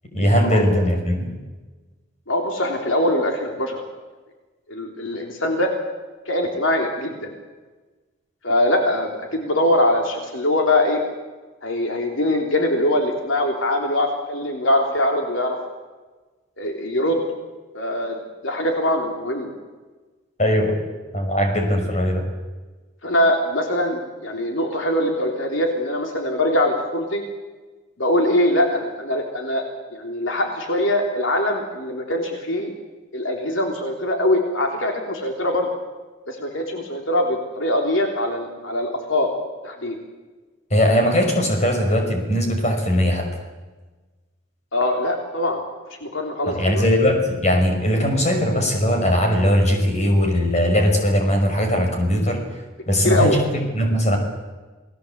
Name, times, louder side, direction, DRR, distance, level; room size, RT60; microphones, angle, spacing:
voice 1, 0.1-1.3 20.4-20.8 21.1-22.3 40.7-43.3 46.5-52.4 52.9-54.2, equal, 35° left, 3 dB, 5.7 m, -19 dB
voice 2, 2.3-3.8 4.7-5.7 6.2-7.3 8.4-11.0 11.6-15.6 16.6-17.2 17.7-19.5 23.0-27.2 28.0-29.6 29.9-32.7 33.1-35.7 36.3-39.3 39.6-40.0 44.7-45.6 46.0-46.8 53.0-53.4, left 1 dB, 70° left, 2 dB, 3.5 m, -22 dB
29.5 x 19.5 x 8.2 m, 1.3 s
head